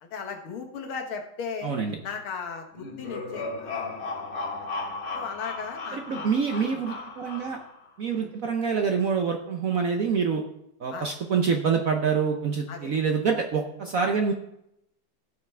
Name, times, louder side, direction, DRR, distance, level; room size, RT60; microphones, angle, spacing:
voice 1, 0.0-1.7 2.0-3.7 4.6-4.7 5.1-6.3 6.6-6.8 8.2-8.3 10.9-11.1 12.7-12.9, left 6 dB, 85° left, 3 dB, 2.1 m, -36 dB
voice 2, 1.6-2.0 5.9-7.6 8.0-10.4 10.8-14.3, right 6 dB, 60° right, 3 dB, 0.9 m, -26 dB
sound 1, 2.7-7.8, left 3 dB, 55° left, 4.0 m, -35 dB
16.5 x 5.8 x 3.3 m, 0.80 s
omnidirectional pair, 2.3 m